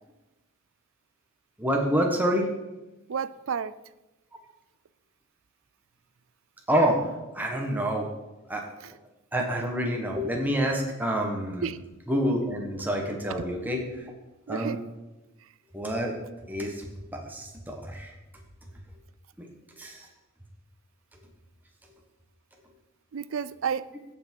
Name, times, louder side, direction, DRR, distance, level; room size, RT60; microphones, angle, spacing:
voice 1, 1.6-2.5 6.7-7.1 7.3-8.1 8.5-8.7 9.3-11.7 12.1-14.1 14.5-14.8 15.7-16.2 16.5-18.1 19.4-19.5 19.8-20.1, equal, 10° right, 1 dB, 1.3 m, -27 dB
voice 2, 3.1-3.7 8.8-8.9 11.6-11.8 14.5-14.8 23.1-23.9, right 7 dB, 65° right, 16 dB, 0.4 m, -31 dB
15.5 x 6.1 x 4.5 m, 1.0 s
head